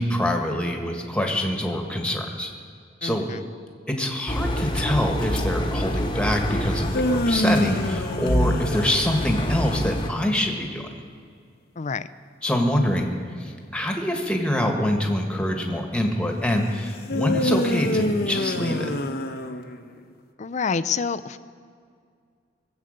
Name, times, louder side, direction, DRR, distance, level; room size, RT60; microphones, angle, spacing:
voice 1, 0.0-2.5 3.0-3.3 3.9-10.9 12.4-13.1 13.4-18.9, left 1 dB, 5° left, 2 dB, 1.6 m, -25 dB
voice 2, 3.0-3.4 11.8-12.1 20.4-21.4, left 5 dB, 40° left, 13 dB, 0.5 m, -27 dB
Engine, 4.3-10.1, equal, 25° left, 1.2 m, -27 dB
sound 1, 6.7-9.9 17.1-20.0, left 1 dB, 60° left, 0.9 m, -26 dB
21.0 x 8.2 x 6.6 m, 2.2 s
head